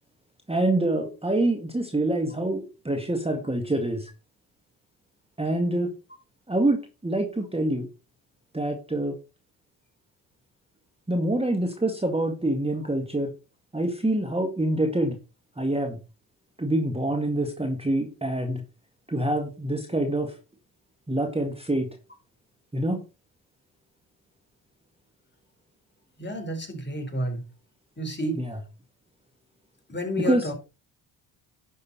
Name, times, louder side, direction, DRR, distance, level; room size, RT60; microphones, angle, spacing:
voice 1, 0.5-4.1 5.4-5.9 6.5-7.9 8.5-9.2 11.1-13.3 13.7-15.2 15.6-16.0 16.6-18.6 19.1-20.3 21.1-21.9 22.7-23.0 28.4-28.6 30.2-30.5, right 1 dB, 10° right, 1.9 m, -26 dB
voice 2, 26.2-27.4 28.0-28.4 29.9-30.5, equal, 20° left, 4.5 m, -30 dB
11.0 x 6.6 x 4.3 m
supercardioid pair, 70°, 50 cm